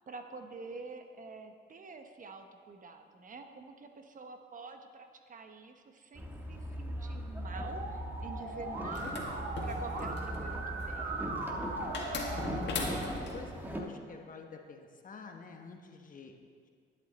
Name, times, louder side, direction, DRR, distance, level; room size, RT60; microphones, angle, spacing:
voice 1, 0.1-9.1 9.6-11.2, right 4 dB, 40° right, 6 dB, 0.9 m, -47 dB
Boat Water vehicle, 6.1-13.8, equal, 10° right, 1.4 m, -40 dB
Musical instrument, 7.5-13.1, right 2 dB, 85° right, 1.3 m, -39 dB
sound 1, 8.9-10.4 11.9-13.4, left 4 dB, 65° left, 1.8 m, -38 dB
voice 2, 12.7-16.7, left 4 dB, 40° left, 4 dB, 1.1 m, -49 dB
11.5 x 9.1 x 4.0 m, 2.1 s
cardioid pair, 90°, 20 cm